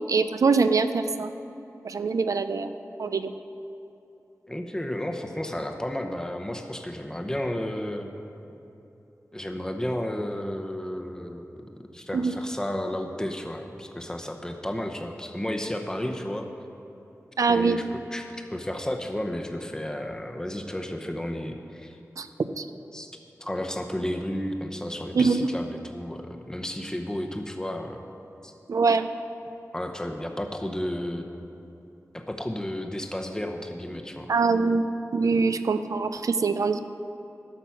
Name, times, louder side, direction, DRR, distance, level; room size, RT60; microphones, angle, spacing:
voice 1, 0.1-1.3 1.8-2.7 3.0-3.3 12.1-12.4 17.4-17.8 22.2-22.3 22.6-22.7 25.1-25.5 28.7-29.1 34.3-34.8 35.1-36.8, right 4 dB, 75° right, 10 dB, 0.4 m, -23 dB
voice 2, 4.5-8.1 9.3-11.7 11.9-16.5 17.5-22.0 22.9-23.1 23.4-28.0 28.4-28.5 29.7-31.3 32.1-34.3, left 1 dB, 10° left, 4 dB, 0.9 m, -32 dB
12.5 x 6.1 x 5.8 m, 2.9 s
wide cardioid pair, 90°, 6 cm